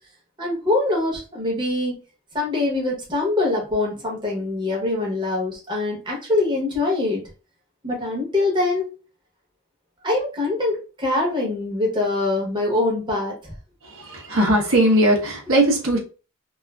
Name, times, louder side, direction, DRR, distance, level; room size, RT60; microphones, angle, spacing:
voice 1, 0.4-2.0 2.3-7.2 7.8-8.9 10.0-13.5, left 2 dB, 20° right, 0.8 m, -23 dB
voice 2, 13.8-16.0, right 1 dB, 65° right, 0.8 m, -19 dB
2.4 x 2.3 x 2.2 m
head